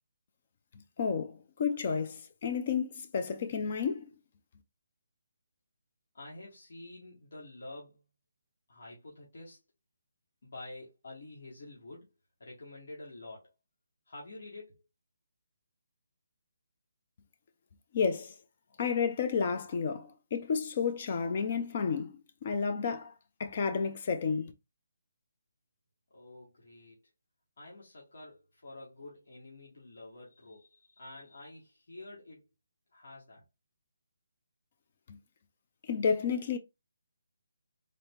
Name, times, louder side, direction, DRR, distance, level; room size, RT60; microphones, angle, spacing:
voice 1, 1.0-4.1 17.9-18.3 18.8-23.1 23.4-24.5 35.1-35.2 35.9-36.6, left 6 dB, 40° left, 0.6 m, -31 dB
voice 2, 6.1-8.0 8.7-9.6 10.4-12.1 12.4-13.5 14.1-14.8 26.1-27.0 27.6-32.5 32.9-33.4, left 2 dB, 70° left, 1.8 m, -48 dB
3.9 x 2.7 x 3.5 m
hypercardioid pair, 155°, 0 cm